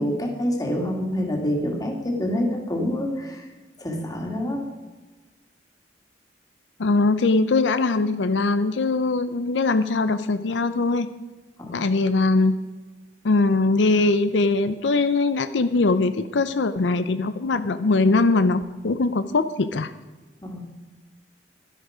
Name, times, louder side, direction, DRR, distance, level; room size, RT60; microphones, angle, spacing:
voice 1, 0.0-3.5 3.8-4.7 11.6-11.8 20.4-20.6, equal, 20° left, 2 dB, 2.3 m, -26 dB
voice 2, 6.8-11.1 11.7-12.6 13.2-19.9, left 3 dB, 85° left, 11 dB, 0.6 m, -21 dB
12.0 x 11.0 x 5.0 m, 1.2 s
head